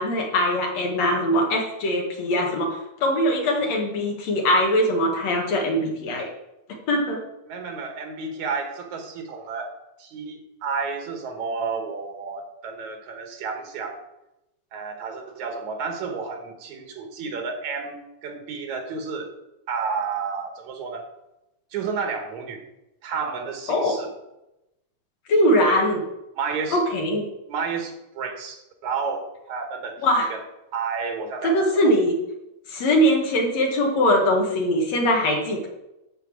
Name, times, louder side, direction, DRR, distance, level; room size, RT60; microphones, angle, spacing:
voice 1, 0.0-6.3 6.9-7.2 23.7-23.9 25.3-26.0 26.7-27.2 30.0-30.3 31.4-32.2 32.7-35.7, equal, 65° left, 1 dB, 3.0 m, -21 dB
voice 2, 7.5-9.7 10.0-14.0 14.7-19.3 19.7-21.1 21.7-22.6 23.0-24.1 25.6-25.8 26.4-26.8 27.5-30.4 30.7-31.9, right 5 dB, 80° right, 4 dB, 2.9 m, -31 dB
12.5 x 4.6 x 7.6 m, 0.91 s
omnidirectional pair, 3.3 m